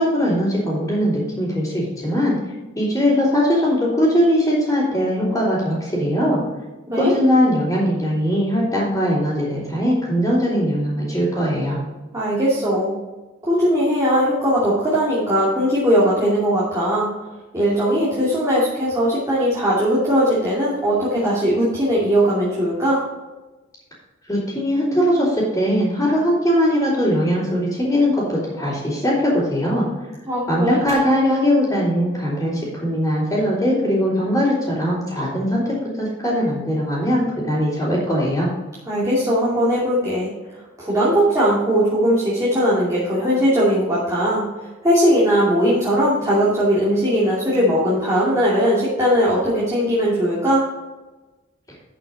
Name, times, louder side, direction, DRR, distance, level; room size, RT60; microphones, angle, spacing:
voice 1, 0.0-2.3 2.8-6.4 7.0-11.8 24.3-29.9 30.5-38.5, equal, 15° left, -12 dB, 3.5 m, -20 dB
voice 2, 12.1-12.9 13.4-17.1 17.5-23.0 30.3-30.8 38.9-50.7, equal, 15° right, -8 dB, 2.6 m, -19 dB
12.5 x 5.9 x 4.1 m, 1.1 s
head